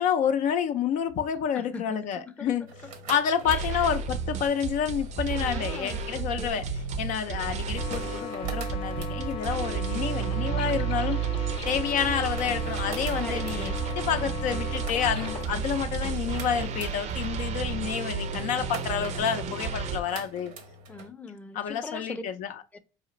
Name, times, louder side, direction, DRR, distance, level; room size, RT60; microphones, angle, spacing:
voice 1, 0.0-2.7 3.1-6.6 7.0-11.2 11.7-20.5 21.5-22.5, left 8 dB, 65° left, 0.5 m, -29 dB
voice 2, 1.5-2.9 3.5-3.9 5.4-6.6 13.2-13.8 20.9-22.2 22.7-22.8, left 3 dB, 10° left, 0.6 m, -41 dB
sound 1, 2.6-21.1, right 1 dB, 80° right, 0.9 m, -45 dB
sound 2, 3.5-20.0, right 7 dB, 55° right, 0.6 m, -32 dB
sound 3, 7.8-15.5, left 5 dB, 40° left, 0.8 m, -37 dB
4.8 x 2.4 x 3.0 m
supercardioid pair, 90°, 14 cm